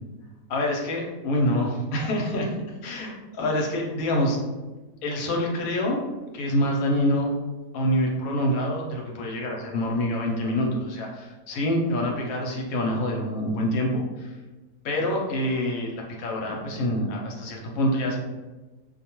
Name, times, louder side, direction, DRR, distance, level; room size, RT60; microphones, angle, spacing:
voice 1, 0.5-2.5 2.8-4.4 5.0-6.0 6.3-7.3 7.7-14.3 14.8-18.2, left 1 dB, 70° left, 0 dB, 1.0 m, -26 dB
2.5 x 2.2 x 2.9 m, 1.2 s
omnidirectional pair, 1.7 m